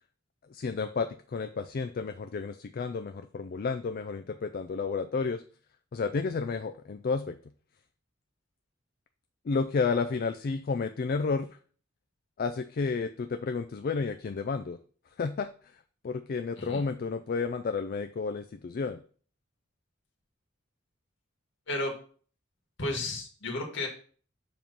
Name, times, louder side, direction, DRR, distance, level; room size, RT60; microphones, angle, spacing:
voice 1, 0.5-5.4 5.9-7.4 9.5-11.5 12.4-14.8 15.2-15.5 16.0-19.0, left 4 dB, 50° left, 8 dB, 0.4 m, -31 dB
voice 2, 22.8-23.9, left 2 dB, 65° left, 2 dB, 1.6 m, -33 dB
7.1 x 3.1 x 5.5 m, 0.43 s
head